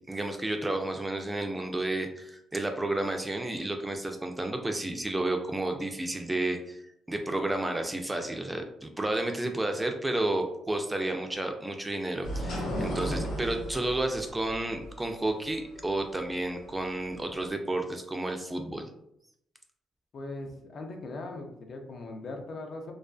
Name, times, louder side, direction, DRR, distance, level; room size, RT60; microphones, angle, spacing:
voice 1, 0.1-6.8 7.1-18.9, right 2 dB, 15° right, 5 dB, 0.3 m, -31 dB
sound 1, 12.2-17.5, equal, 90° left, 0.8 m, -36 dB
voice 2, 20.1-22.9, left 2 dB, 55° left, 3 dB, 0.4 m, -40 dB
2.4 x 2.3 x 2.2 m, 0.76 s
cardioid pair, 90°, 0 cm